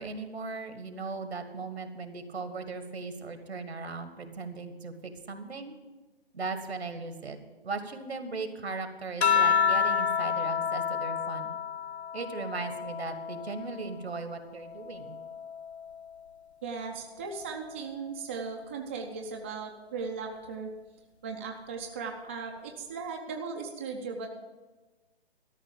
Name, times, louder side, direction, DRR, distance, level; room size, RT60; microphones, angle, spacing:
voice 1, 0.0-5.7 6.3-7.4 7.6-11.6 12.1-15.2, right 4 dB, 80° right, 8 dB, 1.7 m, -38 dB
sound 1, 9.2-14.0 14.5-16.2 17.4-17.9, left 7 dB, 90° left, 0.8 m, -30 dB
voice 2, 16.6-20.7 21.2-24.3, right 5 dB, 15° right, 2 dB, 0.4 m, -37 dB
13.0 x 5.8 x 8.7 m, 1.2 s
figure-of-eight pair, 145°, 31 cm